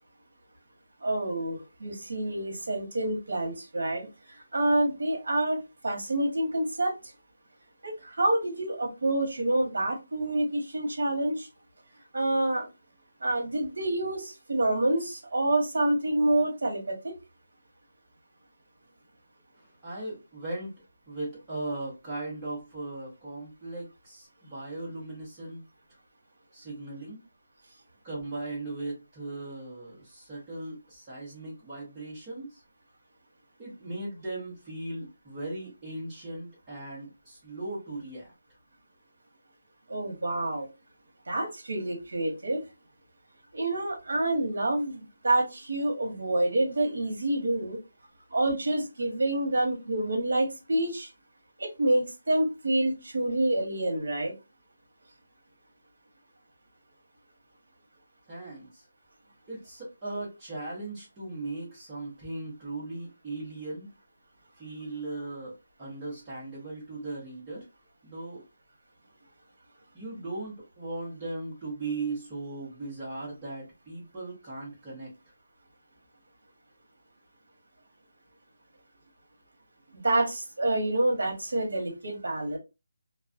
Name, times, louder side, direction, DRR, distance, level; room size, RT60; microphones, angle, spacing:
voice 1, 1.0-7.0 7.8-11.5 12.1-12.7 13.2-17.1 39.9-40.7 41.3-42.6 43.5-47.8 48.3-51.1 51.6-54.3 79.9-82.6, right 1 dB, 60° right, 2 dB, 1.0 m, -27 dB
voice 2, 19.8-20.7 21.1-25.6 26.5-27.2 28.0-32.6 33.6-38.3 58.3-58.8 59.5-63.9 64.6-65.5 65.8-67.6 68.0-68.4 69.9-75.1, right 2 dB, 10° right, -7 dB, 0.7 m, -38 dB
2.3 x 2.2 x 2.4 m, 0.26 s
hypercardioid pair, 180°, 0 cm